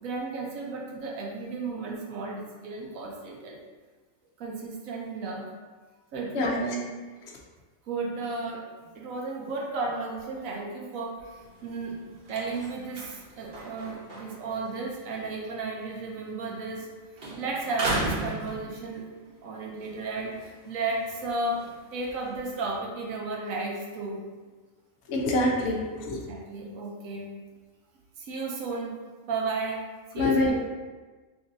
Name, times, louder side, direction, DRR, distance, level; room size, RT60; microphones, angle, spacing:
voice 1, 0.0-3.6 4.4-5.5 6.1-6.9 7.9-8.6 8.9-11.9 12.3-16.9 17.4-19.0 19.4-21.6 21.9-24.2 26.0-27.3 28.2-28.9 29.3-29.8 30.1-30.6, right 3 dB, 80° right, -1 dB, 1.1 m, -33 dB
sound 1, 11.3-16.9 17.2-19.2 19.7-22.7, right 2 dB, 45° right, 0.9 m, -38 dB
voice 2, 25.1-26.2 30.2-30.7, left 2 dB, 60° left, 0 dB, 0.8 m, -25 dB
3.0 x 2.6 x 3.8 m, 1.3 s
omnidirectional pair, 1.4 m